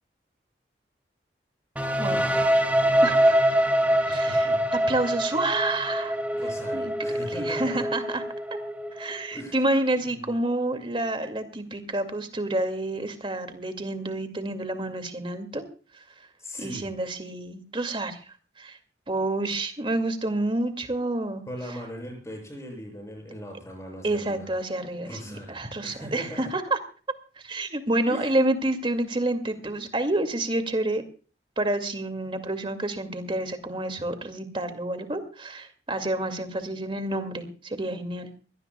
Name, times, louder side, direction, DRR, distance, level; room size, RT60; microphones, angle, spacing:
sound 1, 1.8-9.5, equal, 10° right, 1.8 m, -24 dB
voice 1, 2.0-2.4 4.1-4.7 6.3-7.9 9.3-9.6 10.0-10.2 16.4-16.9 21.4-24.5 25.0-26.5 28.1-28.4, equal, 15° left, 2 dB, 7.3 m, -39 dB
voice 2, 3.0-3.4 4.0-4.5 4.9-6.2 6.7-6.9 7.4-8.2 8.9-15.6 16.6-18.2 18.6-18.8 19.1-21.4 24.0-26.8 27.4-31.0 31.6-38.3, right 2 dB, 30° right, 8 dB, 2.2 m, -28 dB
23.5 x 17.5 x 2.3 m, 0.38 s
head